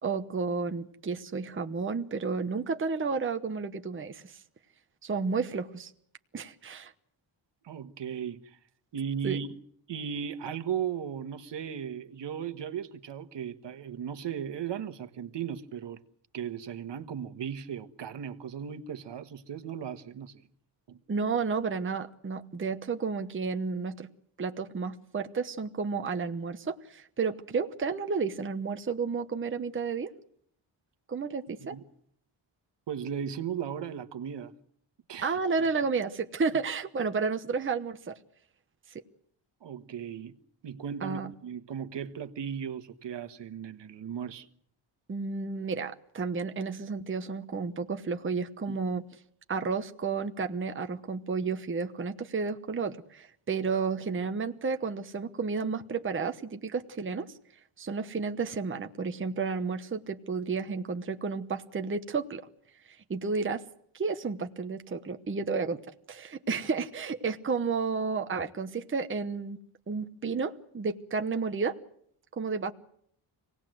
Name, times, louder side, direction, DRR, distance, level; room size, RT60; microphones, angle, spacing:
voice 1, 0.0-4.4 5.0-5.9 6.3-6.9 9.2-9.4 21.1-24.1 24.4-30.1 31.1-31.8 35.2-38.2 38.9-39.0 41.0-41.3 45.1-49.0 49.5-57.3 57.8-62.5 62.8-63.6 63.9-65.8 66.1-69.6 69.9-71.8 72.3-72.7, right 5 dB, 25° right, 1.0 m, -32 dB
voice 2, 7.6-8.6 8.9-9.6 9.9-16.0 16.3-20.5 20.9-21.0 31.6-31.8 32.9-34.5 35.1-35.4 39.6-40.4 40.6-44.5 48.7-48.8, right 8 dB, 60° right, 1.4 m, -36 dB
26.0 x 18.5 x 7.7 m
wide cardioid pair, 140°, 47 cm